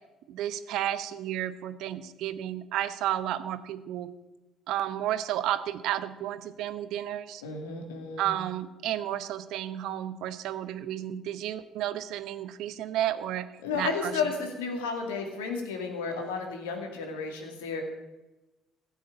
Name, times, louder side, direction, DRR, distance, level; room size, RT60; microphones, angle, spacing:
voice 1, 0.3-4.1 4.7-7.4 8.2-13.5 13.7-14.3, right 12 dB, 70° right, 13 dB, 0.8 m, -32 dB
voice 2, 7.4-8.3 13.6-17.9, left 5 dB, 85° left, 3 dB, 2.1 m, -32 dB
15.0 x 6.3 x 8.4 m, 1.1 s
hypercardioid pair, 55°, 0 cm